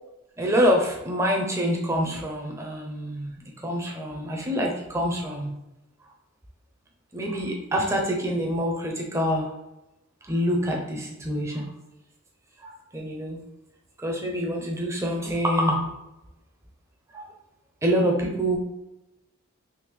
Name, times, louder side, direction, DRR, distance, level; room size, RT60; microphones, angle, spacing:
voice 1, 0.4-5.5 7.1-9.5 10.2-11.7 12.6-13.4 14.0-15.9 17.1-17.3 17.8-18.6, equal, 15° right, 0 dB, 0.5 m, -26 dB
3.5 x 2.8 x 3.1 m, 0.95 s
head